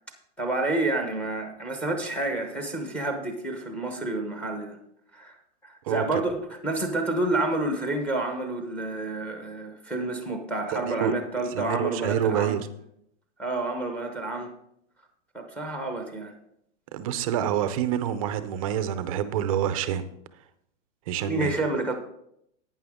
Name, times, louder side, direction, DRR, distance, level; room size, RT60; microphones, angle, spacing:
voice 1, 0.4-4.8 5.1-5.3 5.6-12.6 13.4-14.5 15.3-16.3 21.3-21.9, right 2 dB, 5° left, 0.8 m, -29 dB
voice 2, 5.8-6.2 10.7-11.1 11.5-12.7 16.9-20.1 21.1-21.5, right 10 dB, 30° right, 0.5 m, -27 dB
11.0 x 9.1 x 3.6 m
hypercardioid pair, 160°, 37 cm